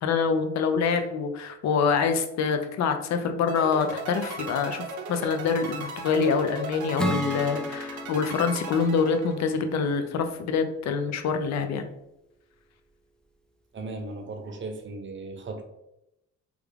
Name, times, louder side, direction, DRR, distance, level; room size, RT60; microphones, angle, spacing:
voice 1, 0.0-11.9, left 5 dB, 65° left, 7 dB, 0.5 m, -26 dB
sound 1, 3.5-9.8, right 3 dB, 75° right, 0.7 m, -37 dB
Acoustic guitar / Strum, 7.0-10.4, equal, 5° left, 0.4 m, -34 dB
voice 2, 13.7-15.6, right 3 dB, 40° right, 4 dB, 0.7 m, -36 dB
3.3 x 2.3 x 3.3 m, 0.86 s
cardioid pair, 90°, 30 cm